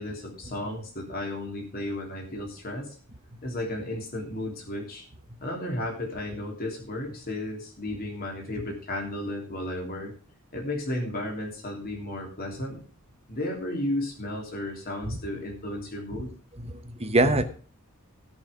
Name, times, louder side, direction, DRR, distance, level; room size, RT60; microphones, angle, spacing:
voice 1, 0.0-2.9 3.4-5.0 5.4-10.1 10.5-12.8 13.3-16.3, left 1 dB, 45° left, 0 dB, 3.2 m, -33 dB
voice 2, 16.6-17.4, right 2 dB, 30° right, 9 dB, 1.1 m, -24 dB
16.5 x 5.7 x 5.3 m, 0.40 s
head